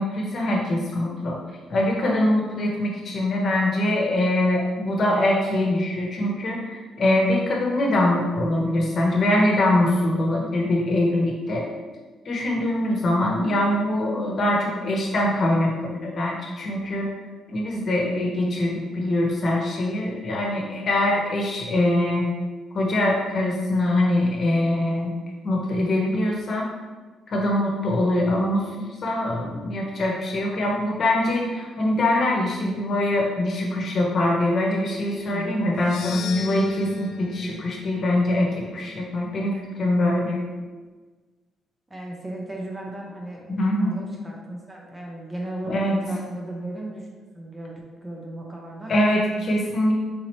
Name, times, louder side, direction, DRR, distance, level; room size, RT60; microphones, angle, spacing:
voice 1, 0.0-1.4 1.7-11.6 12.2-17.1 17.5-22.3 22.7-25.1 25.4-26.7 27.3-40.4 43.5-43.9 45.6-46.0 48.9-49.9, left 1 dB, 50° left, -1 dB, 1.0 m, -23 dB
sound 1, 35.7-40.1, left 6 dB, 75° left, 0.4 m, -39 dB
voice 2, 41.9-47.1 47.3-49.3, right 1 dB, 15° right, -1 dB, 0.7 m, -36 dB
3.9 x 2.9 x 3.1 m, 1.4 s
cardioid pair, 90°, 0 cm